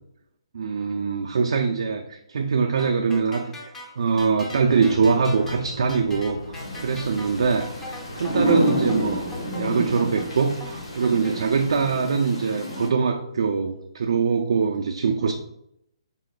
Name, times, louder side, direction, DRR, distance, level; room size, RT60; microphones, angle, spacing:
voice 1, 0.5-3.7 4.0-9.3 9.6-15.3, right 5 dB, 60° right, 2 dB, 0.4 m, -23 dB
sound 1, 2.8-11.4, left 1 dB, 10° left, 0.4 m, -41 dB
sound 2, 4.5-11.9, left 2 dB, 55° left, 0.9 m, -39 dB
sound 3, 6.5-12.9, equal, 75° left, 1.3 m, -30 dB
3.5 x 2.3 x 3.8 m, 0.78 s
hypercardioid pair, 165°, 3 cm